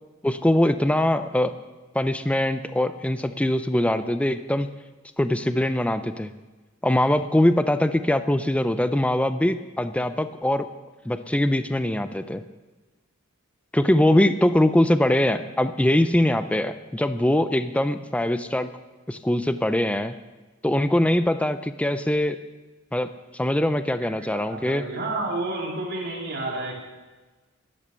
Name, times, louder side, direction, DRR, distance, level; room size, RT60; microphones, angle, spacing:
voice 1, 0.2-1.5 1.9-4.7 5.2-6.3 6.8-10.7 11.1-12.4 13.7-18.7 19.1-20.1 20.6-22.4 22.9-24.8, left 1 dB, 5° left, 10 dB, 0.5 m, -22 dB
voice 2, 24.0-26.7, right 2 dB, 55° right, -2 dB, 3.7 m, -30 dB
12.0 x 12.0 x 6.8 m, 1.2 s
head